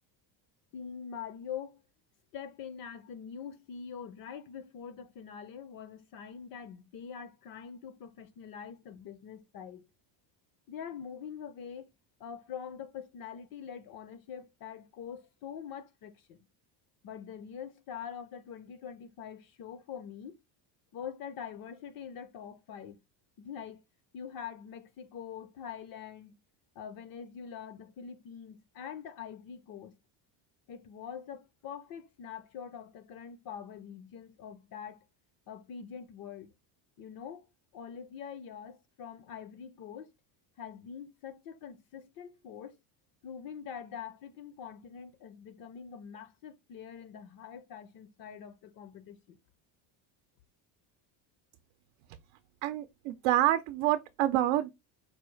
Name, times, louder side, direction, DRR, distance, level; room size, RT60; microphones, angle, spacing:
voice 1, 0.7-1.8 2.3-9.9 10.7-11.9 12.2-16.4 17.0-20.4 20.9-23.0 23.4-23.8 24.1-26.4 26.8-30.0 30.7-35.0 35.5-36.5 37.0-40.1 40.6-42.8 43.2-49.4, left 7 dB, 50° left, 0.5 m, -44 dB
voice 2, 52.6-54.7, right 13 dB, 80° right, 0.6 m, -27 dB
4.7 x 2.3 x 3.1 m
cardioid pair, 155°, 47 cm